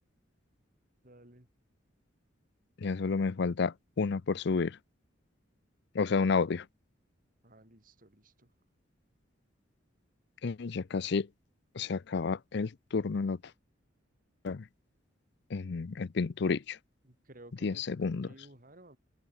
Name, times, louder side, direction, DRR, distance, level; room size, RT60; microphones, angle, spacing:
voice 1, 1.0-1.5 7.4-8.5 17.0-19.0, right 1 dB, 45° right, 3.9 m, -56 dB
voice 2, 2.8-4.8 5.9-6.7 10.4-11.3 11.7-13.4 14.4-14.7 15.5-16.8 17.6-18.3, left 4 dB, 60° left, 0.5 m, -31 dB
open air
head